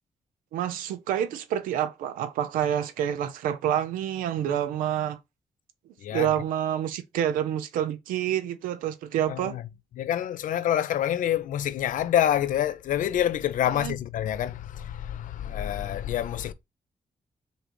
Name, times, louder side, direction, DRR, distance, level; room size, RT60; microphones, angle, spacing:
voice 1, 0.5-5.2 6.1-9.6 13.8-13.9, right 10 dB, 85° right, 0.5 m, -28 dB
voice 2, 6.0-6.3 9.3-9.6 10.0-16.5, left 11 dB, 75° left, 0.5 m, -27 dB
5.2 x 2.5 x 3.0 m
supercardioid pair, 50°, 14 cm